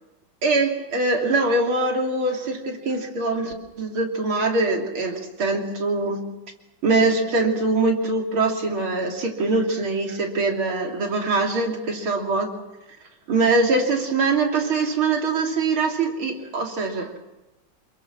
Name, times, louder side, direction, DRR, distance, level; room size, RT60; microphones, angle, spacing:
voice 1, 0.4-6.2 6.8-12.5 13.3-17.1, right 3 dB, 85° right, 2 dB, 3.8 m, -23 dB
27.5 x 22.0 x 6.2 m, 1.0 s
omnidirectional pair, 2.2 m